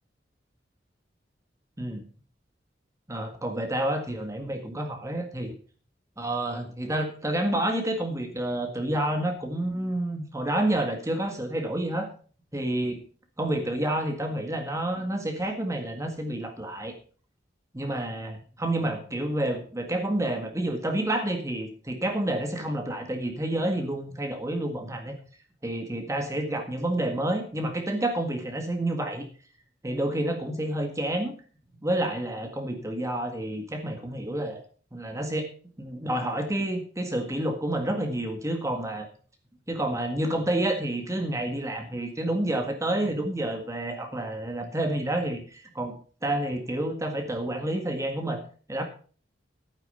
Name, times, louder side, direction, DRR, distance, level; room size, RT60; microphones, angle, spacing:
voice 1, 3.1-5.6 6.2-12.1 12.5-13.0 13.4-16.9 17.7-25.2 25.6-29.3 29.8-31.3 31.8-34.6 34.9-35.5 35.8-39.1 39.7-46.0 46.2-48.4 48.7-48.8, right 1 dB, 15° right, 4 dB, 1.8 m, -29 dB
12.5 x 9.1 x 5.6 m, 0.41 s
head